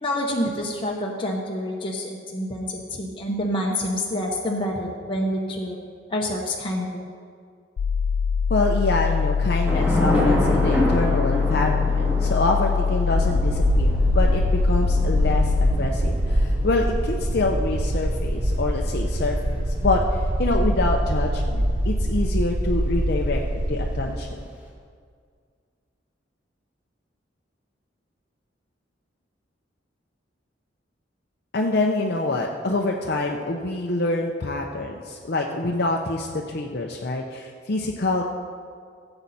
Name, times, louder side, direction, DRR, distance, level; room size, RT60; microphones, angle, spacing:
voice 1, 0.0-5.8 6.1-7.0, left 1 dB, 25° left, -2 dB, 1.0 m, -27 dB
sound 1, 7.8-15.8, left 5 dB, 75° left, 0.3 m, -23 dB
voice 2, 8.5-24.4 31.5-38.3, left 2 dB, 55° left, 1 dB, 0.7 m, -26 dB
Thunder / Rain, 9.7-22.2, left 1 dB, 10° right, 2.1 m, -29 dB
sound 2, 13.1-24.1, right 1 dB, 45° right, 0.8 m, -24 dB
15.5 x 7.9 x 4.2 m, 2.1 s
head